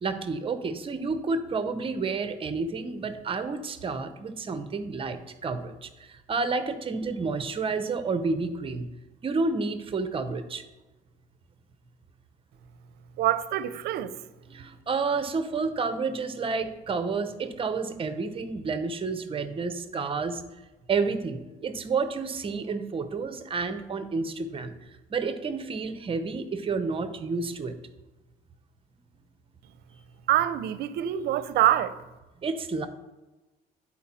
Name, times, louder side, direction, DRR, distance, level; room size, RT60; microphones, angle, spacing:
voice 1, 0.0-8.9 9.2-10.6 14.5-20.4 20.9-24.7 25.1-27.8 32.4-32.9, right 4 dB, 30° right, 0.7 m, -30 dB
voice 2, 13.2-14.1 30.3-32.0, right 12 dB, 70° right, 0.6 m, -25 dB
10.0 x 4.5 x 4.2 m
cardioid pair, 110°, 17 cm